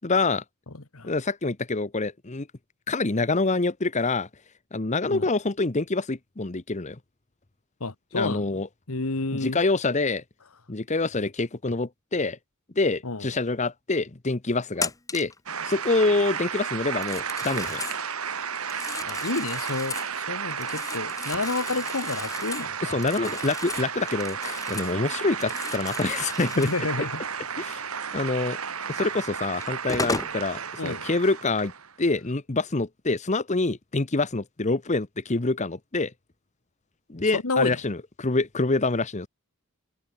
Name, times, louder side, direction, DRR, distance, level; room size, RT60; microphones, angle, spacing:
voice 1, 0.0-0.4 1.0-2.5 2.9-4.3 4.7-7.0 8.1-8.7 9.4-10.2 10.7-12.4 12.8-15.3 15.6-17.8 22.8-26.7 27.6-27.8 28.1-28.6 28.9-31.7 32.0-36.1 37.1-39.3, left 3 dB, 35° left, 1.0 m, -26 dB
voice 2, 7.8-8.6 8.9-9.6 13.0-13.3 19.0-23.0 26.6-27.2 30.8-31.1 37.3-37.8, left 3 dB, 75° left, 1.7 m, -30 dB
Telephone, 14.8-15.4 16.9-18.0 18.6-20.1 20.5-25.0 25.3-26.8 28.9-29.0 29.6-30.4, left 3 dB, 15° left, 1.5 m, -35 dB
sound 1, 15.5-32.0, right 7 dB, 80° right, 2.8 m, -33 dB
head